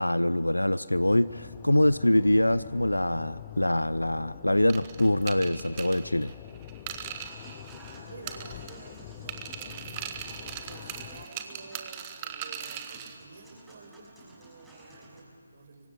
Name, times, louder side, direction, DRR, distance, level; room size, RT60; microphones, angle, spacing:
voice 1, 0.0-6.3, left 1 dB, 90° left, 17 dB, 0.6 m, -24 dB
sound 1, 0.9-11.3, left 14 dB, 25° left, 0.7 m, -45 dB
sound 2, 4.7-8.0 8.3-8.9 9.3-13.2, right 10 dB, 25° right, 1.5 m, -40 dB
Human voice / Acoustic guitar / Piano, 7.2-15.2, right 2 dB, 5° right, 5.9 m, -52 dB
voice 2, 8.1-15.9, right 3 dB, 45° right, 4 dB, 5.8 m, -50 dB
25.0 x 24.5 x 9.7 m, 2.1 s
figure-of-eight pair, 145°, 0 cm